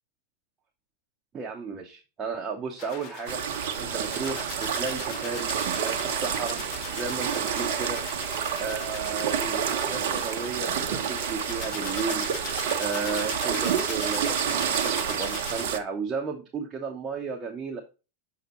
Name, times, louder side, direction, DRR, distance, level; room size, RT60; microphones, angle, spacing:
voice 1, 1.3-5.6 5.8-6.6 6.9-8.0 8.6-12.3 12.8-17.8, right 5 dB, 25° right, 1 dB, 1.1 m, -34 dB
sound 1, 2.8-15.6, left 5 dB, 45° left, 1.8 m, -40 dB
sound 2, 3.3-15.8, right 8 dB, 55° right, 0.8 m, -29 dB
6.6 x 5.8 x 3.1 m, 0.30 s
figure-of-eight pair, 95°, 0 cm